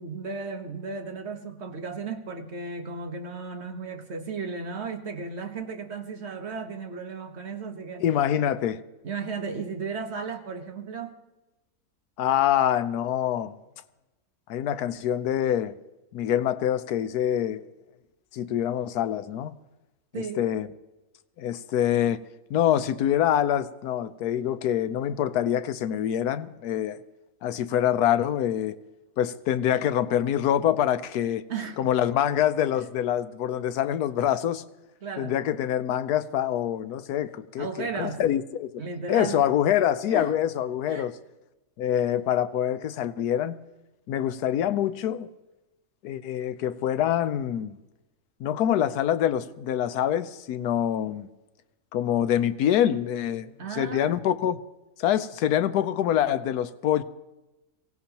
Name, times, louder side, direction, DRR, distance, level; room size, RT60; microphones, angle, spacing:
voice 1, 0.0-8.0 9.0-11.2 20.1-20.5 31.5-31.9 35.0-35.3 37.6-38.2 38.8-39.4 40.1-40.3 40.9-41.1 53.6-54.2, right 4 dB, 50° right, 1.4 m, -35 dB
voice 2, 8.0-8.8 12.2-13.6 14.5-15.7 16.1-17.6 18.3-19.5 20.2-20.7 21.4-22.2 22.5-27.0 27.4-28.8 29.2-31.4 31.8-34.6 35.2-38.8 39.1-41.1 41.8-43.6 44.1-45.3 46.0-47.8 48.4-51.3 51.9-54.6 55.0-57.0, left 10 dB, 90° left, 1.2 m, -25 dB
23.0 x 17.0 x 2.9 m
omnidirectional pair, 1.6 m